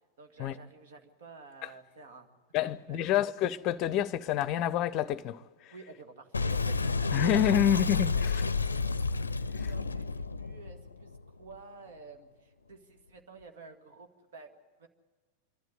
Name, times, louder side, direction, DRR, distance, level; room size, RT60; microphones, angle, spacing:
voice 1, 0.2-2.4 2.6-3.0 5.7-7.8 9.1-9.3 9.7-14.9, right 4 dB, 55° right, 2.0 m, -51 dB
voice 2, 2.5-5.7 7.1-8.5 9.6-9.7, left 11 dB, 40° left, 0.7 m, -28 dB
Boom, 6.3-11.6, left 4 dB, 75° left, 0.5 m, -30 dB
26.5 x 12.5 x 9.5 m
figure-of-eight pair, 90°, 0 cm